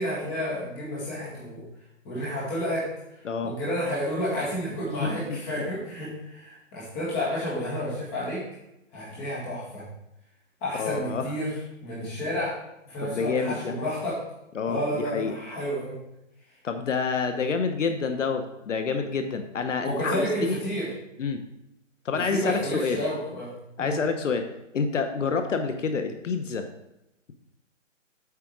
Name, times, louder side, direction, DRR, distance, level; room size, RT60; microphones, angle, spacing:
voice 1, 0.0-1.6 2.0-2.9 3.4-8.4 8.9-9.8 10.6-11.5 11.8-12.6 12.8-14.2 14.7-15.9 19.8-20.9 22.3-23.5 23.8-24.0, equal, 10° left, -7 dB, 1.8 m, -30 dB
voice 2, 5.0-5.4 10.7-11.3 13.0-13.7 14.5-15.3 16.6-20.6 21.2-21.4 22.0-23.0 23.8-24.5 24.7-26.7, left 5 dB, 70° left, 7 dB, 0.9 m, -28 dB
8.3 x 5.0 x 4.7 m, 0.88 s
hypercardioid pair, 175°, 38 cm